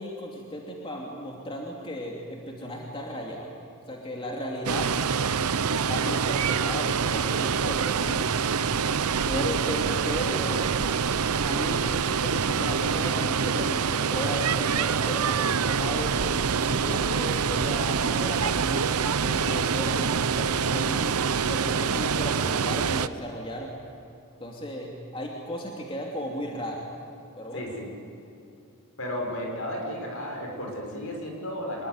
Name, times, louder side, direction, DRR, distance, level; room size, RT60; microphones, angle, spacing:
voice 1, 0.0-3.5 3.9-4.9 5.7-8.3 9.2-10.7 11.4-16.2 16.5-21.2 21.5-23.7 24.4-26.9 27.4-27.7, equal, 25° left, -1 dB, 2.8 m, -35 dB
Water, 4.7-23.1, right 6 dB, 80° right, 0.8 m, -26 dB
voice 2, 27.5-27.9 29.0-31.9, left 1 dB, 65° left, 1 dB, 6.4 m, -33 dB
26.0 x 21.5 x 9.7 m, 2.8 s
head